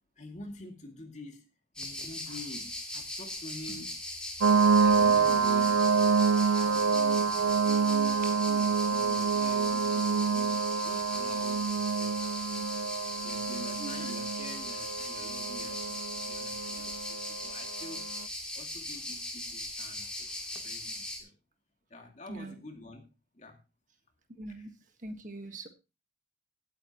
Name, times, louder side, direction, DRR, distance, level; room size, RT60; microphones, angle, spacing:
voice 1, 0.2-1.5 1.8-4.0 4.4-7.3 7.6-12.7 13.2-18.1 18.5-21.3 21.9-23.1 23.3-23.6 24.6-24.7, left 1 dB, 35° left, 3 dB, 2.3 m, -47 dB
sound 1, 1.7-21.2, left 1 dB, 5° left, 2.7 m, -39 dB
sound 2, 4.4-18.1, right 5 dB, 90° right, 0.6 m, -27 dB
voice 2, 13.8-14.1 22.3-22.6 24.4-24.7 25.0-25.7, right 2 dB, 40° right, 6 dB, 1.5 m, -42 dB
17.5 x 8.9 x 3.0 m, 0.29 s
head